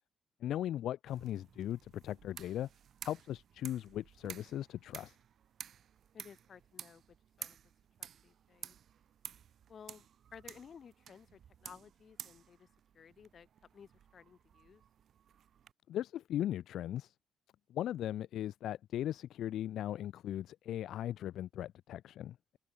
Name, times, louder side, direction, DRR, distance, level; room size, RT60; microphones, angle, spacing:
voice 1, 0.4-2.7 3.0-5.2 15.9-17.1 17.7-22.6, left 12 dB, 75° left, 0.7 m, -38 dB
sound 1, 1.1-15.7, right 9 dB, 60° right, 0.6 m, -53 dB
voice 2, 6.1-7.6 8.0-8.8 9.7-12.7 12.9-14.8, left 7 dB, 50° left, 4.0 m, -56 dB
open air
cardioid pair, 90°, 0 cm